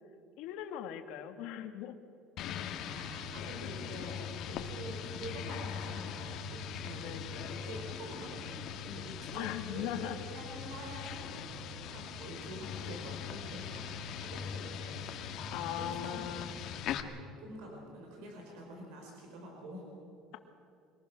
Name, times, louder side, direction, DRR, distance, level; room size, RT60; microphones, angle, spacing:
voice 1, 0.4-2.0 4.5-4.7 7.0-7.2 9.3-10.2 15.5-16.5, left 11 dB, 70° left, 7 dB, 1.7 m, -39 dB
sound 1, 2.4-17.0, left 7 dB, 50° left, 1.5 m, -41 dB
voice 2, 2.9-4.2 4.5-16.2 16.7-16.8 17.4-19.9, right 1 dB, 80° right, 0 dB, 5.0 m, -47 dB
25.0 x 19.5 x 6.3 m, 2.5 s
cardioid pair, 150°, 0 cm